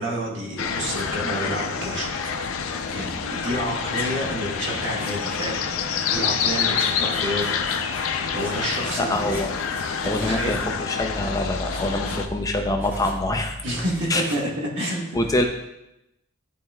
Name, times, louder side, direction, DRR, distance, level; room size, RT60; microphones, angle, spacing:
voice 1, 0.0-2.6 2.9-7.6 8.3-9.4 10.0-10.6 13.6-15.2, equal, 60° right, -2 dB, 1.4 m, -29 dB
sound 1, 0.6-12.3, left 6 dB, 85° left, 0.5 m, -27 dB
Writing, 0.9-1.1 2.2-3.2 4.0-4.1 5.0-5.1 6.7-8.1 8.3-10.8 11.7-12.2 12.8-13.2 13.8-14.4, left 1 dB, 10° right, 1.1 m, -42 dB
voice 2, 9.0-9.5 10.0-13.5 14.1-14.2 15.1-15.4, left 1 dB, 15° left, 4 dB, 0.4 m, -25 dB
11.0 x 4.2 x 2.3 m, 0.90 s
head